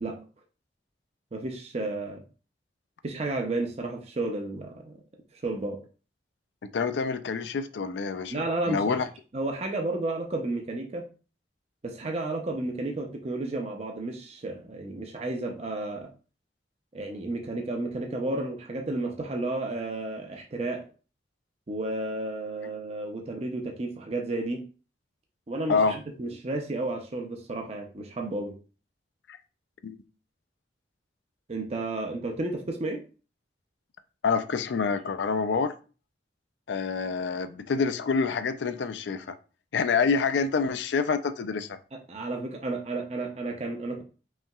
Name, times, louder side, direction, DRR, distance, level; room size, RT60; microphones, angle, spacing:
voice 1, 1.3-2.2 3.0-4.9 5.3-5.8 8.3-8.9 9.3-11.1 11.8-16.1 16.9-20.9 21.7-24.6 25.5-28.5 31.5-33.0 41.9-44.0, right 2 dB, 35° right, 0.6 m, -32 dB
voice 2, 6.7-9.1 25.7-26.0 29.8-30.0 34.2-35.7 36.7-39.3 39.7-41.8, left 5 dB, 75° left, 0.4 m, -27 dB
5.5 x 2.8 x 2.3 m
head